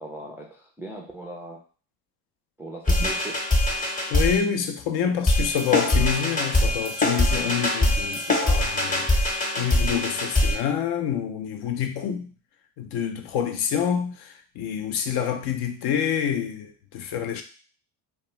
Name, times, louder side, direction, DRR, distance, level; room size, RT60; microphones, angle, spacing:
voice 1, 0.0-1.6 2.6-3.3, right 1 dB, 5° right, 0.3 m, -39 dB
sound 1, 2.9-4.4 5.3-10.6, left 1 dB, 15° left, 0.8 m, -23 dB
voice 2, 4.1-12.3 12.8-17.4, left 8 dB, 55° left, 0.5 m, -27 dB
2.2 x 2.1 x 3.1 m
hypercardioid pair, 70°, 48 cm